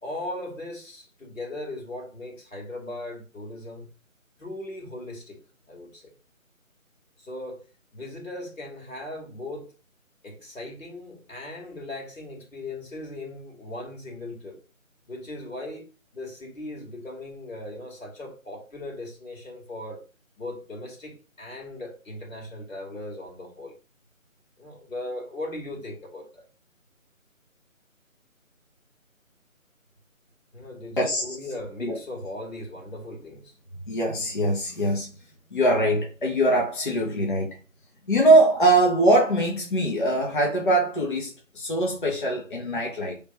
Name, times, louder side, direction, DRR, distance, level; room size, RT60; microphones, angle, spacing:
voice 1, 0.0-3.9 4.4-5.4 5.7-6.1 7.2-9.7 10.2-14.6 15.1-20.0 20.4-23.8 24.6-26.4 30.5-33.5, left 1 dB, 70° left, 2.1 m, -38 dB
voice 2, 31.0-31.4 31.8-32.0 33.9-35.1 35.5-37.6 38.1-43.2, right 1 dB, 40° left, 0.9 m, -22 dB
3.4 x 3.1 x 4.2 m
figure-of-eight pair, 160°, 41 cm